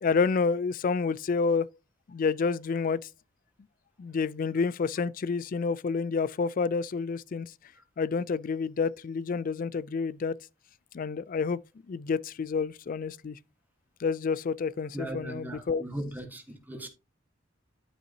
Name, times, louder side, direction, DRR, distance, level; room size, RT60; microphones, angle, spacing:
voice 1, 0.0-1.7 2.1-3.1 4.0-7.5 8.0-10.4 10.9-11.6 11.9-13.4 14.0-15.8, left 5 dB, 45° left, 0.3 m, -29 dB
voice 2, 14.9-16.9, right 1 dB, 10° right, 1.5 m, -38 dB
12.0 x 5.5 x 2.8 m
head